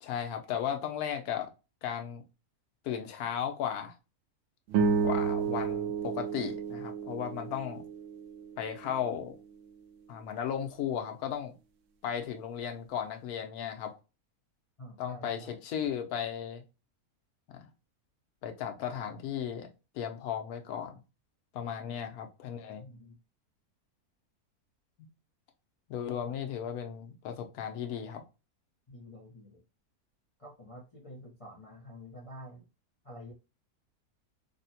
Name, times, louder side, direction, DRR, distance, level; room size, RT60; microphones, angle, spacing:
voice 1, 0.0-1.5 1.8-2.2 2.8-3.9 5.0-7.8 8.6-9.3 10.1-11.5 12.0-13.9 15.0-16.6 17.5-17.7 18.4-19.7 19.9-21.0 21.5-22.8 25.9-28.2, left 8 dB, 80° left, 1.1 m, -35 dB
sound 1, 4.7-9.2, right 5 dB, 65° right, 0.8 m, -32 dB
voice 2, 14.8-15.6 21.8-22.1 22.8-23.2 26.1-26.4 28.9-29.6 30.4-32.7 33.0-33.3, equal, 35° left, 0.6 m, -49 dB
3.6 x 2.1 x 2.7 m
omnidirectional pair, 1.6 m